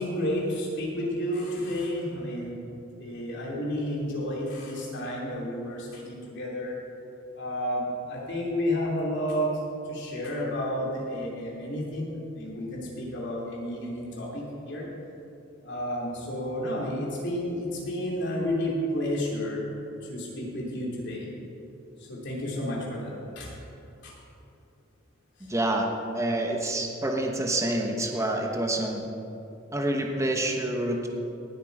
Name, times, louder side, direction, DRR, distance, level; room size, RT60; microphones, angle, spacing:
voice 1, 0.0-2.6 3.0-6.7 7.3-9.6 9.9-14.9 15.6-19.6 20.0-21.3 22.0-23.5 24.0-24.1, equal, 60° left, -3 dB, 3.2 m, -31 dB
voice 2, 25.4-25.9 26.1-29.0 29.7-31.1, right 1 dB, 15° right, 1 dB, 1.0 m, -27 dB
18.5 x 8.2 x 4.9 m, 2.7 s
head